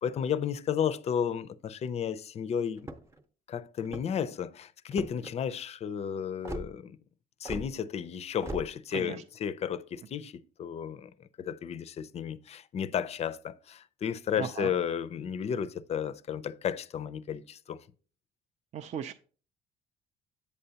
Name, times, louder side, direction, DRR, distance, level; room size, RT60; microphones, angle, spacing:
voice 1, 0.0-2.8 3.5-7.0 7.4-11.1 11.4-17.8, left 8 dB, 40° left, 0.4 m, -33 dB
sound 1, 2.8-3.2 3.8-4.3 4.9-5.3 6.4-6.7 7.4-7.7 8.4-8.7, right 1 dB, 15° right, 0.8 m, -39 dB
voice 2, 14.4-14.7 18.7-19.1, right 8 dB, 40° right, 0.4 m, -36 dB
8.4 x 6.7 x 2.8 m
cardioid pair, 110°, 17 cm